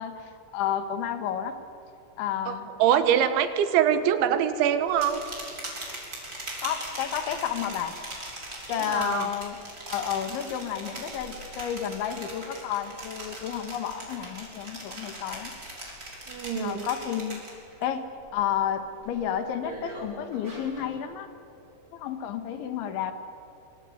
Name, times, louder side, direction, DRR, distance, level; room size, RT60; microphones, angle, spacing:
voice 1, 0.0-1.6 2.2-2.7 6.6-8.0 8.7-9.6 9.9-15.5 16.5-17.5 17.8-21.3 21.9-23.1, left 9 dB, 80° left, 8 dB, 4.0 m, -31 dB
voice 2, 2.5-5.2 8.8-9.3 16.3-16.9, right 9 dB, 85° right, 10 dB, 3.8 m, -24 dB
sound 1, 4.9-17.8 18.2-18.6 19.0-20.9, right 1 dB, 20° right, 5.8 m, -40 dB
25.5 x 25.0 x 9.4 m, 2.9 s
omnidirectional pair, 5.2 m